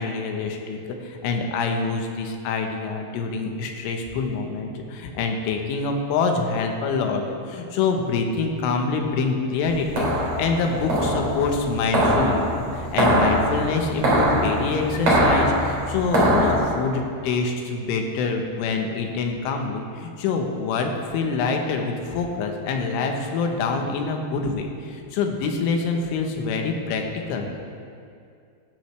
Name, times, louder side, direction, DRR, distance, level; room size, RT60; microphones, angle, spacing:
voice 1, 0.0-10.1 10.4-27.5, left 4 dB, 85° left, 3 dB, 3.7 m, -26 dB
sound 1, 9.6-16.6, right 1 dB, 35° right, 3.7 m, -22 dB
18.5 x 11.5 x 3.4 m, 2.3 s
omnidirectional pair, 5.5 m